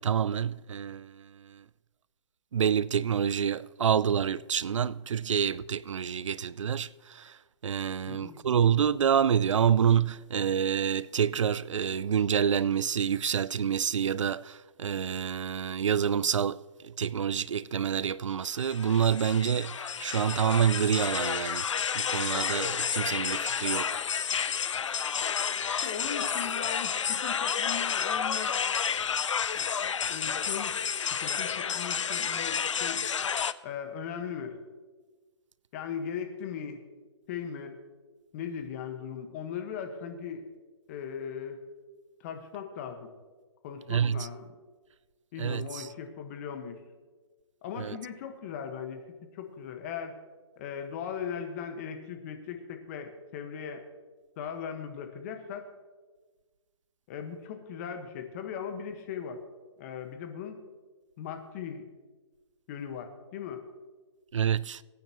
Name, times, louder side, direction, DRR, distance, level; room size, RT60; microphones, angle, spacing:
voice 1, 0.0-1.6 2.5-21.7 21.9-24.0 43.9-44.3 45.4-45.9 47.8-48.0 64.3-64.8, right 8 dB, 85° right, 0.4 m, -28 dB
voice 2, 8.1-8.4 25.8-28.7 29.5-29.7 30.1-30.8 31.1-33.0 33.6-34.6 35.7-36.8 37.3-37.8 38.3-40.4 40.9-41.6 42.2-43.1 43.6-44.5 45.3-46.8 47.6-49.0 49.3-50.2 50.6-53.8 54.4-55.7 57.1-59.4 59.8-60.6 61.2-61.9 62.7-63.7, left 7 dB, 30° left, 1.4 m, -38 dB
sound 1, 18.5-33.5, left 7 dB, 90° left, 0.5 m, -30 dB
21.5 x 9.4 x 3.0 m
hypercardioid pair, 155°, 15 cm